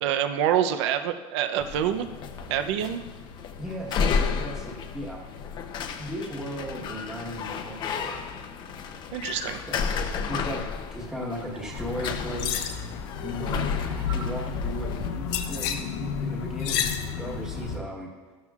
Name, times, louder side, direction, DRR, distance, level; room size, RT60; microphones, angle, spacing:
voice 1, 0.0-2.1 2.5-3.0 9.1-9.6, right 10 dB, 75° right, 9 dB, 0.6 m, -26 dB
sound 1, 1.6-15.1, left 6 dB, 30° left, 0.7 m, -33 dB
voice 2, 3.6-5.2 6.0-8.2 9.7-9.8 10.3-10.6 10.9-12.7 13.2-18.1, equal, 5° right, -4 dB, 1.2 m, -36 dB
sound 2, 9.2-9.5 11.4-11.9 13.7-14.3, right 8 dB, 40° right, 2.1 m, -46 dB
sound 3, 11.7-17.8, left 7 dB, 70° left, 1.1 m, -31 dB
14.0 x 12.5 x 2.4 m, 1.3 s
supercardioid pair, 160°, 15 cm